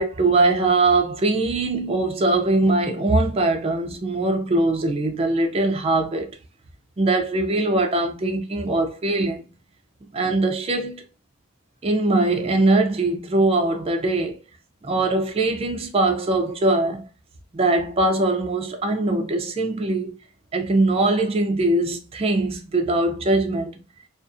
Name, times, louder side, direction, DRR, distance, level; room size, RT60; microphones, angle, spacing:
voice 1, 0.0-6.3 7.0-9.5 10.1-11.0 11.8-14.4 14.8-17.1 17.5-20.1 20.5-23.8, right 2 dB, 25° right, 0.4 m, -21 dB
2.4 x 2.4 x 2.4 m
head